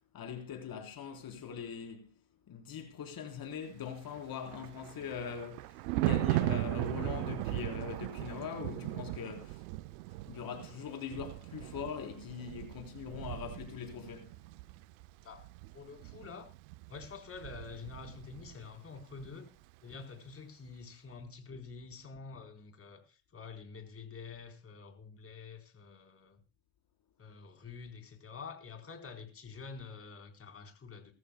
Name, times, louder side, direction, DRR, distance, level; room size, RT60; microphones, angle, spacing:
voice 1, 0.1-2.1 2.5-9.6 10.3-14.4, left 7 dB, 45° left, 4.0 m, -42 dB
Thunder, 4.1-18.7 19.0-19.2, right 20 dB, 80° right, 0.6 m, -38 dB
voice 2, 15.2-16.5 16.9-19.5 19.8-26.4 27.2-31.1, left 5 dB, 30° left, 4.1 m, -48 dB
21.0 x 14.0 x 2.3 m
supercardioid pair, 100°, 47 cm